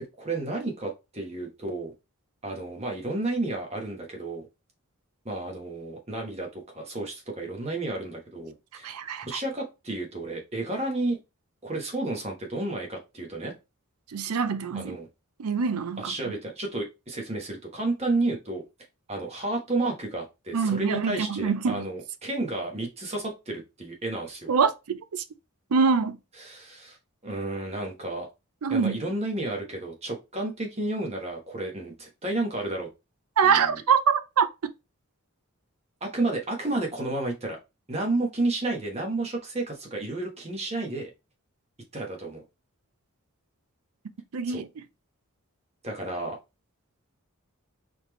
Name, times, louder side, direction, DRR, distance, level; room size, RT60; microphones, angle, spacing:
voice 1, 0.2-1.9 2.4-4.5 5.2-8.9 9.2-11.2 11.6-13.5 14.7-15.1 16.0-18.6 19.1-24.5 26.4-27.0 27.2-28.3 28.7-32.9 33.4-33.8 36.0-37.6 37.9-41.1 41.9-42.4 44.5-44.6 45.8-46.4, right 2 dB, 30° right, 1.1 m, -31 dB
voice 2, 8.8-9.3 14.1-15.0 15.4-16.3 20.5-21.9 24.5-25.2 25.7-26.2 28.6-29.0 33.4-34.7 44.3-44.7, right 6 dB, 80° right, 0.5 m, -25 dB
4.1 x 3.4 x 3.0 m
head